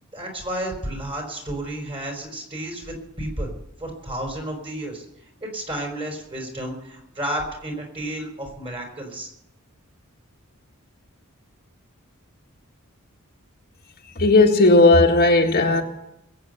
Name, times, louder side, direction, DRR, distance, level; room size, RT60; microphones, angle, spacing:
voice 1, 0.1-3.5 3.8-5.0 5.4-9.3, right 1 dB, 25° right, 2 dB, 4.6 m, -31 dB
voice 2, 14.2-15.8, left 2 dB, 45° left, 1 dB, 1.6 m, -15 dB
22.0 x 8.8 x 6.7 m, 0.83 s
head